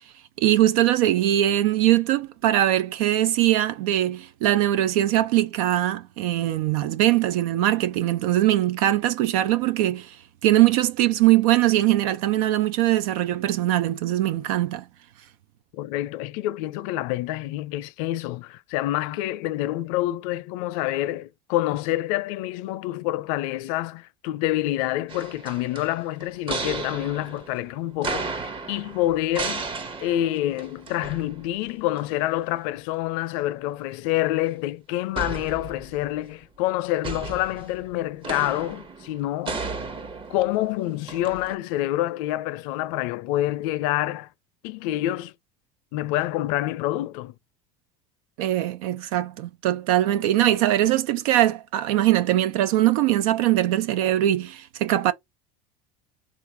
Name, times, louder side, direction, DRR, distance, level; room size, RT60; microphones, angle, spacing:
voice 1, 0.4-10.2 10.4-14.8 48.4-55.1, right 13 dB, 80° right, 0.5 m, -21 dB
voice 2, 15.7-29.6 30.0-39.6 40.3-44.3 44.6-45.3 45.9-47.3, left 15 dB, 75° left, 0.5 m, -27 dB
sound 1, 25.1-31.7 32.0-32.1 35.2-36.2 37.0-41.5, right 4 dB, 30° right, 0.9 m, -34 dB
3.7 x 2.5 x 4.4 m
supercardioid pair, 110°, 18 cm